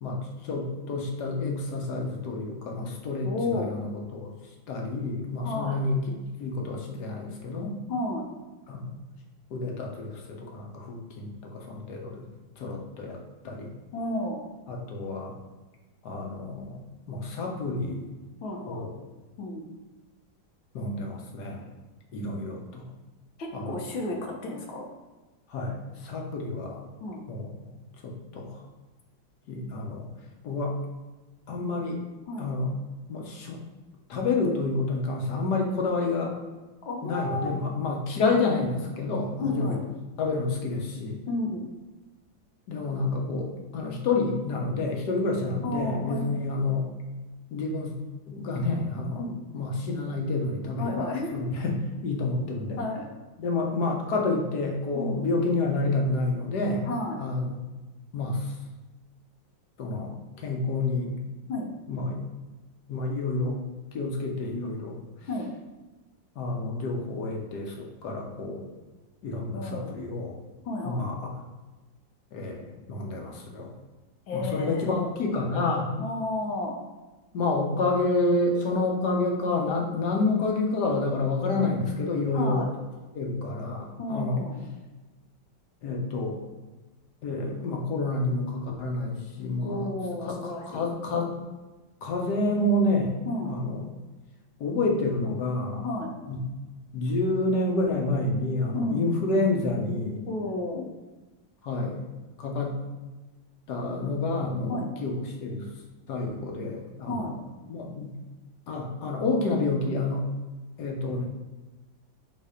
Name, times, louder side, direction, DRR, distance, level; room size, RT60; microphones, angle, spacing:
voice 1, 0.0-4.3 4.7-7.8 8.7-8.9 9.5-12.2 12.6-13.2 13.4-13.7 14.7-15.3 16.0-16.8 17.1-18.1 18.7-18.9 20.7-21.7 22.1-22.8 23.5-23.7 25.5-26.8 27.3-27.7 28.0-28.6 29.5-30.1 30.4-30.8 31.5-32.0 32.4-32.7 33.1-33.6 34.1-36.3 37.0-39.7 40.2-41.2 42.7-46.9 47.5-48.0 48.3-49.3 49.5-52.8 53.4-56.9 57.2-57.6 58.1-58.5 59.8-61.1 61.9-62.2 62.9-63.6 63.9-65.0 66.4-68.6 69.2-70.4 70.8-71.3 72.3-73.7 74.3-75.9 77.3-82.7 83.1-84.4 85.8-86.4 87.2-89.9 90.2-91.3 92.0-93.2 93.4-93.9 94.6-95.8 96.3-96.4 96.9-100.2 101.6-102.0 102.4-102.8 103.7-105.1 105.4-105.7 106.1-107.3 107.7-108.2 108.7-110.3 110.8-111.3, left 2 dB, 60° left, 1 dB, 1.5 m, -29 dB
voice 2, 3.2-3.7 5.4-5.8 7.9-8.3 13.9-14.4 18.4-18.9 19.4-19.7 23.4-24.9 27.0-27.2 32.3-32.5 36.9-37.5 39.4-39.8 41.3-41.7 45.6-46.5 49.2-49.4 50.8-51.4 52.8-53.1 54.9-55.4 56.8-57.2 61.5-61.7 65.3-65.5 69.5-69.9 70.7-71.1 74.3-74.9 76.0-76.8 82.3-82.7 84.0-84.6 89.6-90.9 93.3-93.5 95.8-96.1 98.7-99.1 100.3-100.9 104.7-104.9 107.1-107.3, left 2 dB, 85° left, 1 dB, 1.8 m, -32 dB
5.5 x 4.1 x 5.0 m, 1.2 s
omnidirectional pair, 2.1 m